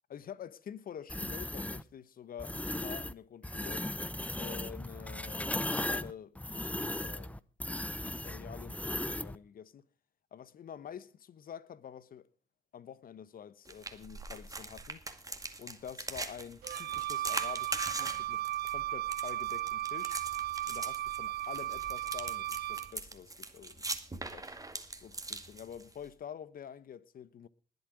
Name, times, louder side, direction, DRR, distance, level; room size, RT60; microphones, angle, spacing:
voice 1, 0.1-3.9 4.3-7.4 8.1-9.8 10.3-12.3 12.7-15.0 15.6-20.2 20.7-24.6 25.0-27.5, left 8 dB, 55° left, 1.0 m, -47 dB
sound 1, 1.1-1.8 2.4-3.1 3.4-9.4, left 1 dB, 10° left, 0.8 m, -37 dB
sound 2, 13.7-26.1, right 2 dB, 20° right, 2.1 m, -42 dB
Wind instrument woodwind instrument, 16.6-23.0, right 14 dB, 65° right, 0.7 m, -36 dB
20.0 x 8.0 x 4.9 m
hypercardioid pair, 50°, 18 cm